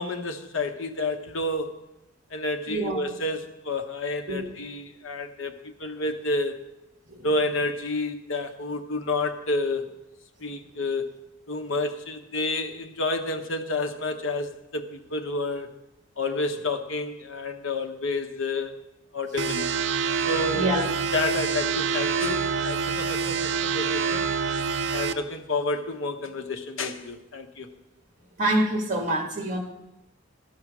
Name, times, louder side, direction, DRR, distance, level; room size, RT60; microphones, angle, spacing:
voice 1, 0.0-1.8 2.3-6.6 7.2-9.9 10.4-11.1 11.5-15.7 16.2-18.8 19.1-19.7 20.2-20.7 21.1-24.3 24.9-27.7, left 2 dB, 80° left, 7 dB, 1.0 m, -30 dB
voice 2, 2.7-3.1 4.3-4.5 7.1-7.3 20.5-20.9 28.4-29.6, right 1 dB, 40° right, 2 dB, 1.8 m, -26 dB
sound 1, 19.4-25.1, right 6 dB, 65° right, 0.6 m, -26 dB
12.5 x 7.3 x 6.0 m, 0.92 s
head